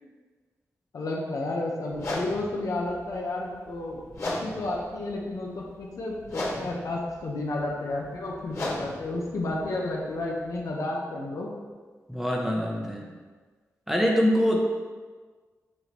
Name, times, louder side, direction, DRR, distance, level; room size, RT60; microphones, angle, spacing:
voice 1, 0.9-4.0 4.2-11.5, left 2 dB, 80° left, -1 dB, 1.2 m, -31 dB
sound 1, 1.9-10.7, left 1 dB, 65° left, 1.9 m, -37 dB
voice 2, 12.1-13.1 13.9-14.6, equal, 5° right, -1 dB, 0.9 m, -24 dB
6.5 x 5.6 x 3.1 m, 1.4 s
cardioid pair, 75°, 6 cm